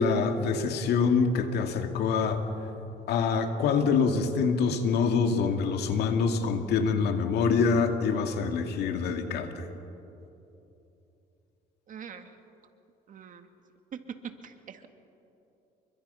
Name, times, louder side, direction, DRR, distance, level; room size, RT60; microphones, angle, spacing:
voice 1, 0.0-2.4 3.1-9.7, left 5 dB, 75° left, 5 dB, 2.3 m, -25 dB
voice 2, 11.9-12.3 13.1-13.5 14.4-14.9, right 7 dB, 50° right, 7 dB, 1.9 m, -45 dB
29.0 x 24.0 x 5.7 m, 2.9 s
cardioid pair, 110°, 17 cm